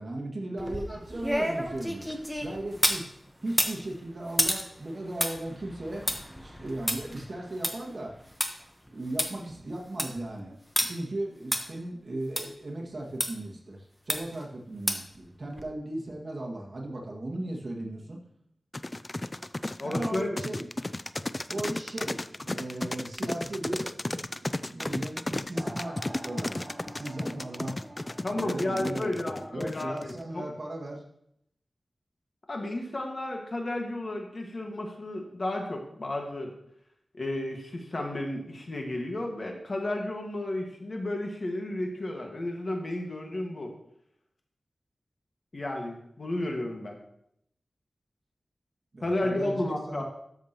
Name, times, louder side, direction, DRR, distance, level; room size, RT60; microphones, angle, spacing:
voice 1, 0.0-2.1 2.4-3.1 3.4-6.1 6.4-8.1 8.9-18.2 19.8-20.7 21.5-26.0 26.2-27.8 28.3-31.0 48.9-50.0, right 1 dB, 50° right, -1 dB, 1.9 m, -37 dB
sound 1, 0.6-3.0 3.5-8.5 8.9-9.0 9.2-9.3 9.7-10.2 10.8-10.9 11.5-11.6 12.4-12.5 13.2-13.3 14.1-14.4 14.9-15.2 15.6-15.7, equal, ahead, 1.1 m, -30 dB
sound 2, 18.7-30.2, left 2 dB, 25° left, 0.3 m, -33 dB
voice 2, 19.8-20.4 28.2-30.5 32.5-36.5 37.1-43.7 45.5-47.0 49.0-50.0, left 1 dB, 50° left, 2 dB, 1.7 m, -32 dB
sound 3, 25.5-30.7, right 1 dB, 25° right, 1.7 m, -47 dB
13.0 x 6.8 x 3.0 m, 0.73 s
wide cardioid pair, 80°, 0 cm